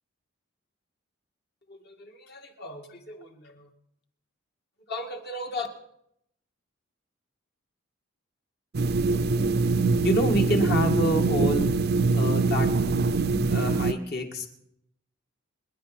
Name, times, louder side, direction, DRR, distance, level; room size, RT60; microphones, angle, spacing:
voice 1, 1.7-3.7 4.9-5.7 10.0-11.7 12.1-12.7 13.5-14.5, equal, 50° left, 3 dB, 2.1 m, -29 dB
sound 1, 8.7-13.9, right 3 dB, 50° right, 0.5 m, -23 dB
28.5 x 10.5 x 4.4 m, 0.76 s
head